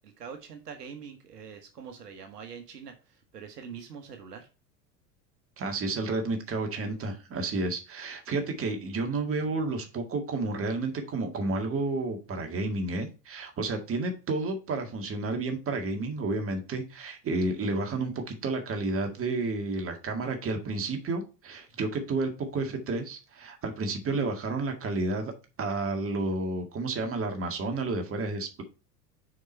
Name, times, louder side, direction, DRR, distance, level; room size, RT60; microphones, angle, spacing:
voice 1, 0.0-4.5, right 6 dB, 70° right, 1.2 m, -44 dB
voice 2, 5.6-25.3 25.6-28.6, right 3 dB, 25° right, 1.9 m, -31 dB
6.4 x 5.0 x 4.4 m
figure-of-eight pair, 80°, 49 cm